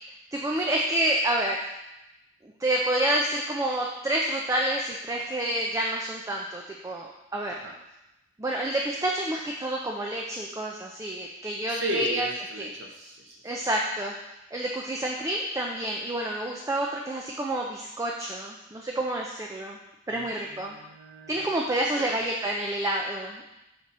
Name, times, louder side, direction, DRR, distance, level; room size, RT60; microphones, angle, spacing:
voice 1, 0.3-1.6 2.4-7.5 8.4-12.3 12.6-12.7 13.4-14.1 14.5-19.8 20.1-20.8 21.3-23.4, right 1 dB, 15° right, -1 dB, 0.4 m, -28 dB
voice 2, 11.7-13.5 20.1-21.6 22.0-22.2, right 2 dB, 70° right, 2 dB, 0.9 m, -36 dB
6.0 x 4.0 x 4.2 m, 0.92 s
head